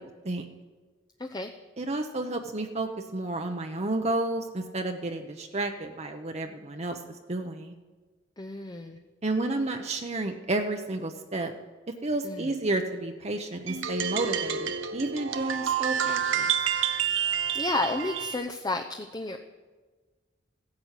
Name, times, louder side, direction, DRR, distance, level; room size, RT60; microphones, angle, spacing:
voice 1, 1.2-1.5 8.4-9.0 12.2-12.5 17.5-19.4, left 2 dB, 20° left, 5 dB, 0.7 m, -31 dB
voice 2, 1.8-7.7 9.2-11.5 12.0-16.5, right 2 dB, 35° right, 4 dB, 0.9 m, -31 dB
sound 1, 13.7-18.4, right 8 dB, 80° right, 1.0 m, -29 dB
15.5 x 10.5 x 8.3 m, 1.3 s
head